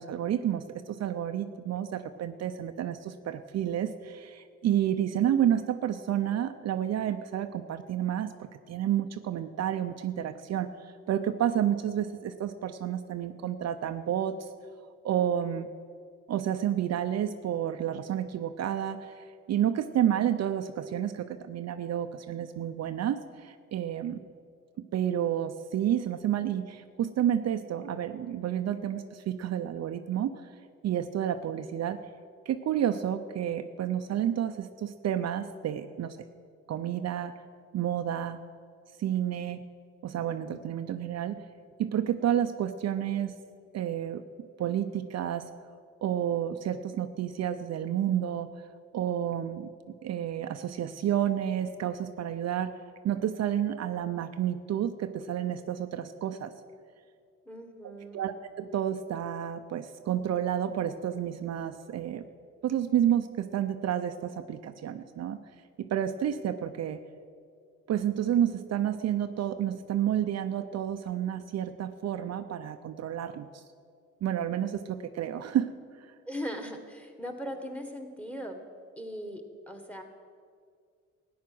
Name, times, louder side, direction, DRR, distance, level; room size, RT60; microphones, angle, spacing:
voice 1, 0.0-14.5 15.0-15.7 16.3-24.2 24.9-30.4 30.8-32.0 32.5-36.2 36.7-37.3 37.7-38.4 39.0-39.6 40.0-41.4 41.8-43.4 43.7-44.2 44.6-45.5 46.0-48.5 48.9-52.7 53.0-56.5 58.1-62.2 62.6-65.4 65.8-67.0 67.9-73.6 74.2-75.7 76.0-76.1, right 10 dB, 60° right, 8 dB, 0.6 m, -30 dB
voice 2, 57.4-58.2 76.2-78.6 79.0-80.0, equal, 5° left, 6 dB, 1.6 m, -39 dB
13.5 x 9.4 x 6.1 m, 2.1 s
cardioid pair, 90°, 30 cm